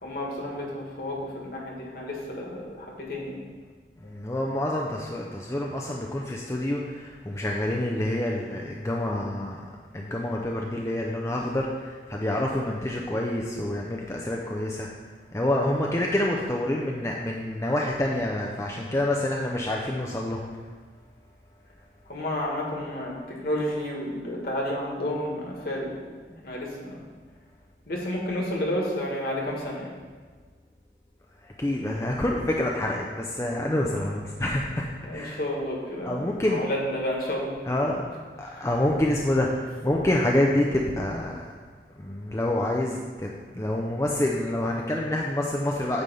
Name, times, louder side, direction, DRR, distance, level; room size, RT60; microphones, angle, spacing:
voice 1, 0.0-3.4 4.0-4.1 22.1-26.0 26.4-27.0 27.9-29.9 35.1-37.6 38.4-38.7, left 1 dB, 55° left, -2 dB, 1.9 m, -31 dB
voice 2, 4.0-14.9 15.3-20.4 31.4-35.4 36.0-36.6 37.6-38.0 38.4-41.5 42.0-43.3 43.5-46.0, left 1 dB, 15° left, -1 dB, 0.5 m, -27 dB
9.2 x 3.4 x 6.9 m, 1.5 s
head